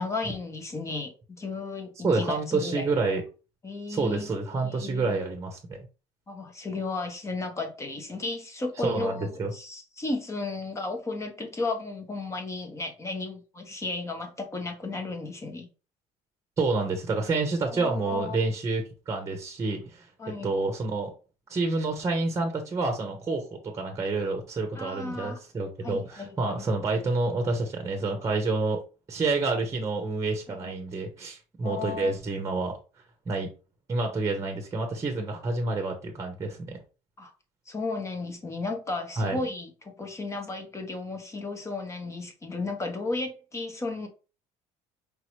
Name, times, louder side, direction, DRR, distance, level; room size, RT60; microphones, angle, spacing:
voice 1, 0.0-3.1 3.6-5.2 6.3-15.7 17.7-18.4 20.2-20.5 24.7-25.4 25.8-26.7 30.5-30.8 31.6-32.1 34.3-34.5 37.2-37.3 37.7-44.1, left 3 dB, 20° left, 1.2 m, -34 dB
voice 2, 2.0-3.2 3.9-5.8 8.8-9.5 16.6-20.1 20.4-21.1 21.5-23.5 23.7-28.8 29.1-32.8 33.3-33.5 33.9-36.8 39.2-39.4, right 3 dB, 20° right, 1.0 m, -28 dB
5.0 x 2.9 x 3.1 m
cardioid pair, 115°, 14 cm